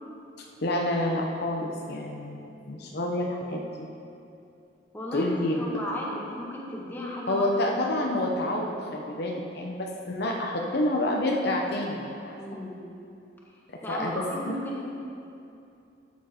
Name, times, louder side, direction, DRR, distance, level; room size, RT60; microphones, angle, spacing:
voice 1, 0.4-3.9 5.1-5.9 7.3-12.3 13.7-14.1, left 1 dB, 60° left, 0 dB, 0.9 m, -28 dB
voice 2, 4.9-7.5 7.9-8.2 12.3-13.0 13.8-14.8, left 1 dB, 10° left, -4 dB, 1.6 m, -35 dB
13.0 x 7.1 x 4.4 m, 2.7 s
head